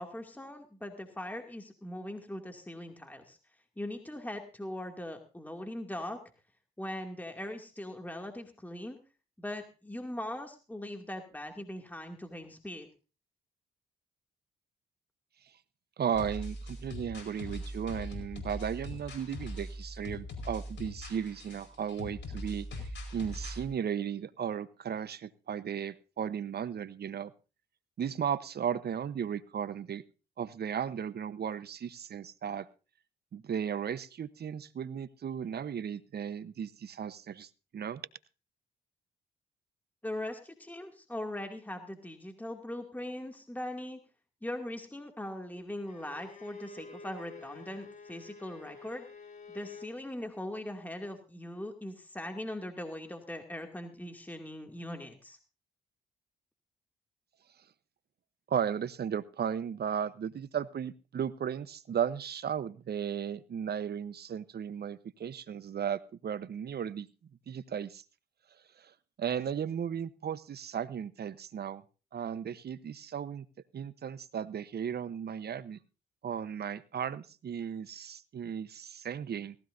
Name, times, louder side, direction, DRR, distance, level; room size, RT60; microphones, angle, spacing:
voice 1, 0.0-3.4 3.8-6.2 6.8-9.0 9.4-12.9 40.0-44.0 44.4-49.0 49.5-55.4, left 1 dB, 10° left, 4 dB, 2.5 m, -40 dB
voice 2, 16.0-27.3 28.0-30.0 30.4-32.7 33.3-38.0 58.5-67.1 67.5-68.0 68.8-68.9 69.2-71.8 72.1-73.4 73.7-75.8 76.2-79.6, right 8 dB, 55° right, 16 dB, 1.0 m, -35 dB
sound 1, 16.1-23.7, left 1 dB, 65° left, 5.0 m, -41 dB
Bowed string instrument, 45.9-50.0, left 4 dB, 40° left, 5.7 m, -50 dB
18.0 x 16.0 x 2.7 m, 0.33 s
hypercardioid pair, 50°, 20 cm